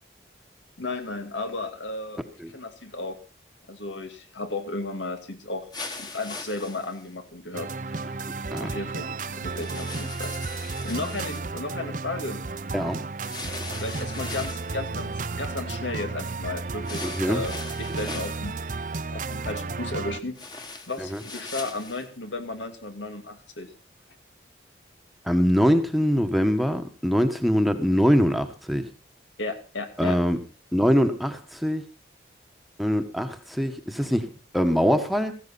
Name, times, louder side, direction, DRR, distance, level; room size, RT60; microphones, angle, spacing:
voice 1, 0.8-2.2 2.5-3.2 3.7-5.7 6.0-8.3 8.6-12.4 13.8-18.5 19.1-20.4 20.9-23.7 29.4-30.2, left 2 dB, 90° left, 2.5 m, -34 dB
sound 1, 5.7-7.1 9.5-11.5 13.2-14.7 16.8-18.4 20.3-22.1, left 3 dB, 20° left, 1.5 m, -39 dB
sound 2, 7.5-20.2, right 3 dB, 45° right, 0.7 m, -33 dB
voice 2, 12.7-13.0 17.0-17.4 21.0-21.2 25.3-28.8 30.0-30.4 30.7-31.8 32.8-35.3, equal, ahead, 1.2 m, -23 dB
16.5 x 14.5 x 4.1 m
head